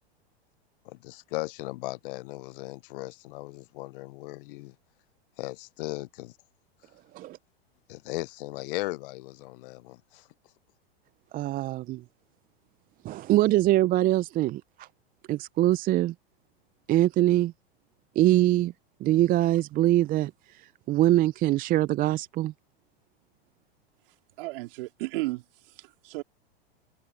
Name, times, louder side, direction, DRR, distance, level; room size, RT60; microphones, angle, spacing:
voice 1, 0.8-4.7 5.4-6.3 7.9-10.3, left 21 dB, 60° left, 0.7 m, -37 dB
voice 2, 11.3-12.0 13.0-14.9 15.3-16.1 16.9-17.5 18.2-18.7 19.0-22.5, right 15 dB, 30° right, 0.5 m, -23 dB
voice 3, 24.4-25.4 25.8-26.2, right 21 dB, 60° right, 3.1 m, -33 dB
hypercardioid pair, 110°, 31 cm